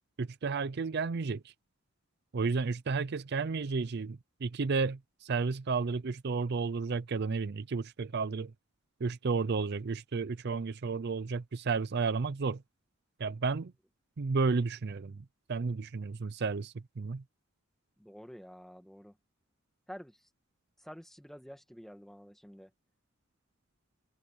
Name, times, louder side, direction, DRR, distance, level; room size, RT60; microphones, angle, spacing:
voice 1, 0.2-1.5 2.3-8.5 9.0-12.6 13.2-13.7 14.2-17.2, right 4 dB, 55° right, 0.5 m, -32 dB
voice 2, 18.0-19.1 19.9-20.2 20.8-22.7, equal, ahead, 1.4 m, -49 dB
head